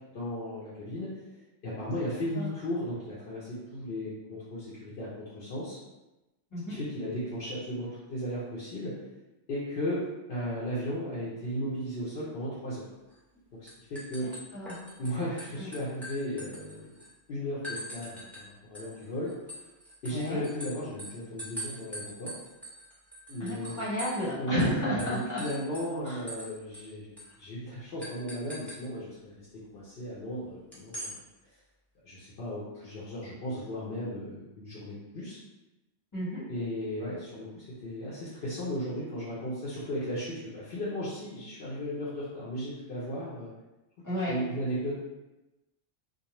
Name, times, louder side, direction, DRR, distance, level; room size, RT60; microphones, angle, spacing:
voice 1, 0.1-1.1 1.6-5.8 6.7-8.9 9.5-12.9 13.6-14.3 15.0-16.9 17.3-18.3 18.6-19.3 20.0-22.3 23.3-23.8 24.4-27.1 27.4-31.2 32.0-35.4 36.5-43.5 44.3-44.9, equal, 65° left, -9 dB, 0.9 m, -35 dB
sound 1, 13.1-13.4 13.7-15.1 15.4-17.1 17.6-18.4 18.7-24.3 24.6-24.7 25.0-26.5 26.7-26.8 27.2-27.3 28.0-28.8 30.7-31.1, equal, ahead, 0.4 m, -42 dB
voice 2, 14.2-14.8 15.6-15.7 20.1-20.5 23.4-25.4 26.0-26.2 36.1-36.4 44.0-44.4, equal, 15° left, -10 dB, 0.9 m, -32 dB
2.5 x 2.2 x 2.9 m, 1.0 s
omnidirectional pair, 1.2 m